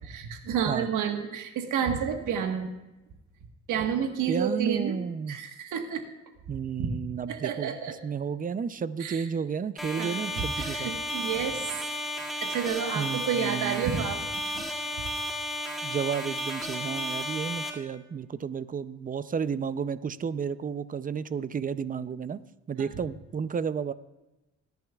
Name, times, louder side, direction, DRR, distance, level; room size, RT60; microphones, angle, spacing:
voice 1, 0.1-2.7 3.7-4.9 5.3-6.1 6.8-7.0 7.3-7.9 9.0-9.3 10.0-11.8 12.4-14.6 22.8-22.9, right 7 dB, 80° right, 5 dB, 1.5 m, -30 dB
voice 2, 4.3-5.4 6.5-7.7 8.0-10.9 12.9-14.1 15.8-22.4 22.7-23.9, right 7 dB, 30° right, 15 dB, 0.5 m, -32 dB
sound 1, 9.8-17.7, left 1 dB, ahead, 2.1 m, -33 dB
19.5 x 10.5 x 2.4 m, 1.0 s
cardioid pair, 90°, 30 cm